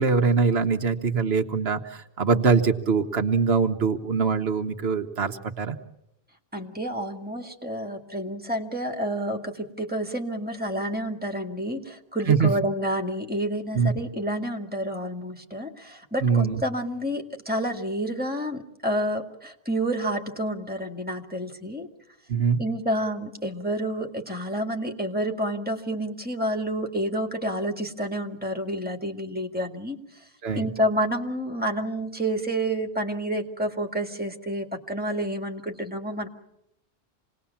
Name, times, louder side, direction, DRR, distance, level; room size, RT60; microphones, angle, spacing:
voice 1, 0.0-5.8 12.3-12.5 13.7-13.9 16.2-16.6 22.3-22.6 30.4-30.7, right 5 dB, 85° right, 7 dB, 1.4 m, -23 dB
voice 2, 6.5-21.9 22.6-30.3 30.5-36.3, right 1 dB, 10° right, 4 dB, 2.1 m, -29 dB
27.0 x 19.5 x 7.1 m, 0.86 s
omnidirectional pair, 1.0 m